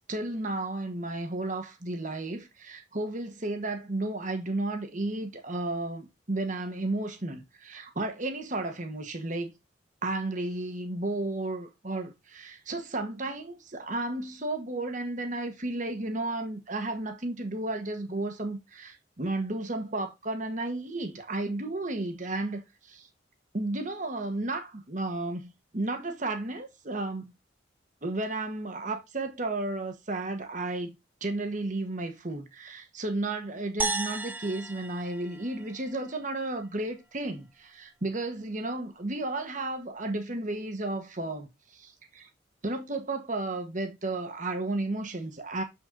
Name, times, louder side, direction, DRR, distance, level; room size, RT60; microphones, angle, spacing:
voice 1, 0.1-9.5 10.0-23.1 23.5-27.3 28.0-30.9 31.2-42.3 42.6-45.6, right 2 dB, 45° right, 1.3 m, -33 dB
sound 1, 33.8-36.2, right 3 dB, 10° right, 0.5 m, -34 dB
7.2 x 5.9 x 3.8 m
head